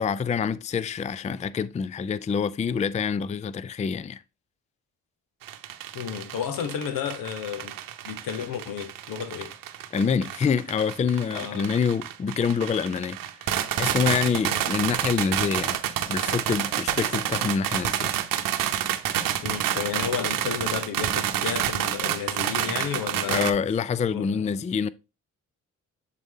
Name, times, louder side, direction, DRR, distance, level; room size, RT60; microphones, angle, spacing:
voice 1, 0.0-4.2 9.9-13.2 13.4-15.8 16.1-18.1 23.3-24.9, left 6 dB, 20° left, 0.4 m, -26 dB
sound 1, 5.4-23.5, right 11 dB, 85° right, 0.8 m, -29 dB
voice 2, 5.9-7.8 8.0-9.5 11.3-11.7 14.4-14.6 19.4-23.5 24.1-24.5, left 8 dB, 80° left, 1.1 m, -32 dB
7.6 x 4.1 x 3.6 m
cardioid pair, 70°, 33 cm